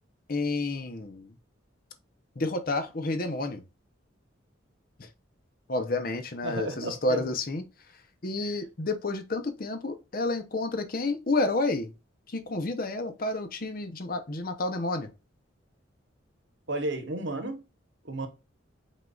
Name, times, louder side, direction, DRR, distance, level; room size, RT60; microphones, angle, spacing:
voice 1, 0.3-1.3 2.4-3.6 5.0-5.1 5.7-7.6 8.2-11.9 12.3-15.1, left 2 dB, 45° left, 0.7 m, -30 dB
voice 2, 6.4-7.3 8.4-8.5 16.7-17.6 18.0-18.3, right 2 dB, 60° right, 1.1 m, -33 dB
5.4 x 3.8 x 2.4 m
head